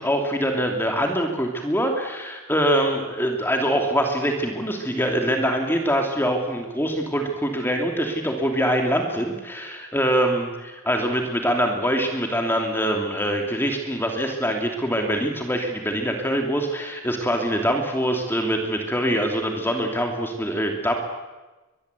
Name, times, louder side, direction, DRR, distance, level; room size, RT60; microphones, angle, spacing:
voice 1, 0.0-20.9, equal, 10° left, 3 dB, 2.8 m, -24 dB
23.5 x 21.5 x 8.3 m, 1.2 s
head